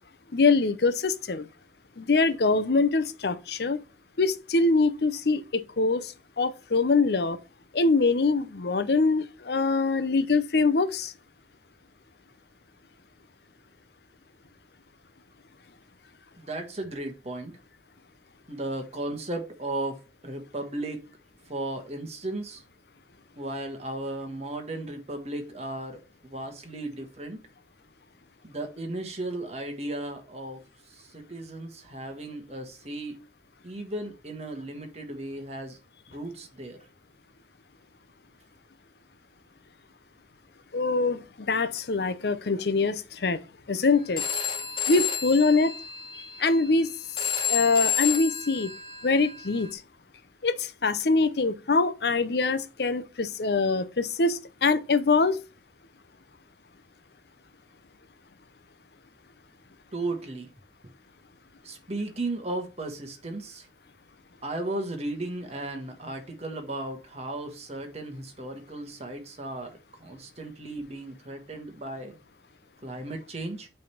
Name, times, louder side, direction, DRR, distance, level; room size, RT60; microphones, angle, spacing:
voice 1, 0.3-1.4 2.0-3.8 4.2-7.4 7.7-11.1 40.7-43.4 43.7-44.2 44.9-45.7 46.4-46.9 47.5-48.7 49.0-49.8 50.4-55.4, left 3 dB, 65° left, 0.7 m, -24 dB
voice 2, 16.4-17.5 18.5-21.0 21.5-22.6 23.4-27.4 28.4-30.6 31.0-33.2 33.6-35.8 36.1-36.8 59.9-60.5 61.6-63.7 64.4-72.1 72.8-73.7, right 2 dB, 35° right, 1.6 m, -35 dB
Telephone, 44.2-49.7, left 8 dB, 30° left, 1.4 m, -31 dB
7.7 x 3.5 x 5.7 m
head